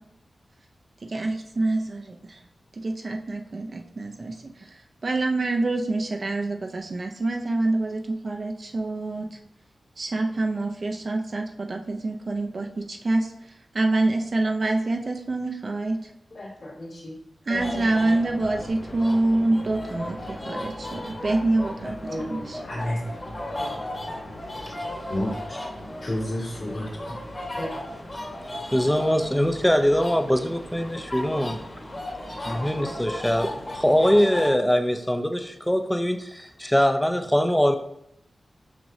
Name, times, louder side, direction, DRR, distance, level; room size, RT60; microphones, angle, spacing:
voice 1, 1.0-2.4 2.8-4.8 5.0-9.4 10.0-16.1 17.5-22.6, right 2 dB, 50° right, 3 dB, 0.5 m, -26 dB
voice 2, 16.3-17.1 17.5-18.2 22.1-23.0 23.5-23.8 24.8-25.4 26.0-27.2 27.6-27.8, left 1 dB, 60° left, -4 dB, 2.4 m, -32 dB
sound 1, 17.5-34.5, left 1 dB, 35° left, 1.5 m, -36 dB
voice 3, 28.7-31.6 32.5-37.8, equal, 5° left, 7 dB, 0.5 m, -22 dB
6.1 x 6.0 x 2.7 m, 0.77 s
wide cardioid pair, 100°, 0 cm